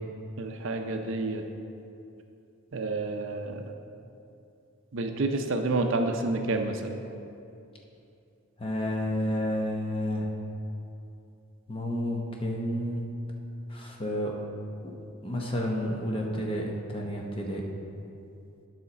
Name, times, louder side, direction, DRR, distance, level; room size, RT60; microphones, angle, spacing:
voice 1, 0.4-1.4 2.7-3.6 4.9-7.0, right 2 dB, 60° right, 5 dB, 0.5 m, -29 dB
voice 2, 8.6-10.3 11.7-13.0 13.7-14.3 14.8-14.9 15.2-17.6, equal, 25° left, 0 dB, 0.8 m, -30 dB
9.4 x 5.7 x 4.1 m, 2.7 s
head